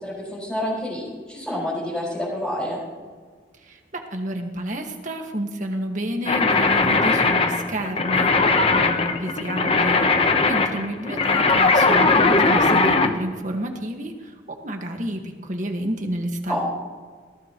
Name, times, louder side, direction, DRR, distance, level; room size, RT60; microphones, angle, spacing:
voice 1, 0.0-2.8 16.5-16.6, equal, 5° left, -10 dB, 5.3 m, -28 dB
voice 2, 3.6-16.6, right 1 dB, 45° right, 3 dB, 1.8 m, -30 dB
sound 1, 6.2-13.1, left 3 dB, 30° left, 1.0 m, -19 dB
20.0 x 17.0 x 3.1 m, 1.5 s
head